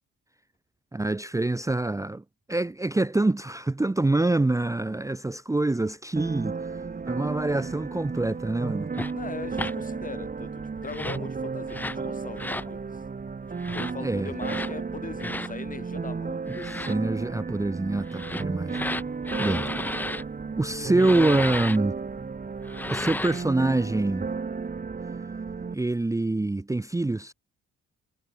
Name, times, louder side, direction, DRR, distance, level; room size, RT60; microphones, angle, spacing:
voice 1, 0.9-6.6 7.1-8.9 14.0-14.3 16.5-18.9 19.4-19.6 20.6-22.0 22.9-24.3 25.7-27.3, right 2 dB, 10° right, 0.8 m, -25 dB
sound 1, 6.2-25.8, right 5 dB, 30° right, 1.8 m, -34 dB
sound 2, 8.9-9.1 9.5-9.7 10.8-11.3 11.7-12.0 12.4-12.7 13.6-13.9 14.4-14.7 15.2-15.5 16.5-16.9 18.1-20.2 21.0-21.8 22.6-23.4, left 2 dB, 5° left, 0.4 m, -33 dB
voice 2, 9.1-13.0 13.7-16.9, left 5 dB, 25° left, 1.3 m, -40 dB
cardioid pair, 90°, 30 cm